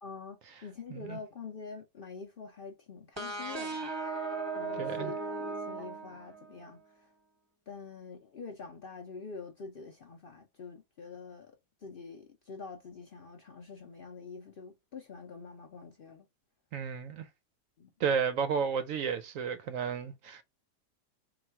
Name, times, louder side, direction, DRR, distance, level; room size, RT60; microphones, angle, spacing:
voice 1, 0.0-3.9 4.6-6.8 7.7-11.5 11.8-16.2 17.8-17.9, left 4 dB, 65° left, 0.5 m, -46 dB
sound 1, 3.2-6.7, right 3 dB, 20° right, 0.8 m, -37 dB
voice 2, 4.7-5.1 16.7-17.3 18.0-20.4, right 6 dB, 70° right, 0.8 m, -32 dB
3.8 x 2.4 x 4.5 m
omnidirectional pair, 1.7 m